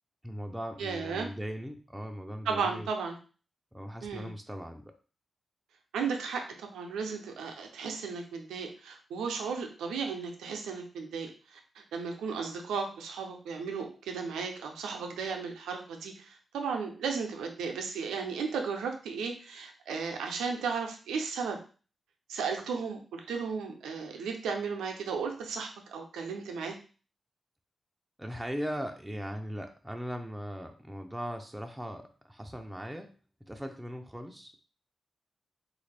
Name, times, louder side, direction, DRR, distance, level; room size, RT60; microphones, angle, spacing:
voice 1, 0.2-2.9 3.7-4.9 28.2-33.2 33.5-34.6, equal, 10° right, 3 dB, 0.5 m, -39 dB
voice 2, 0.8-1.3 2.5-3.2 4.0-4.3 5.9-21.6 22.3-26.8, right 5 dB, 90° right, 3 dB, 0.5 m, -35 dB
3.4 x 2.5 x 3.2 m, 0.37 s
supercardioid pair, 45°, 0 cm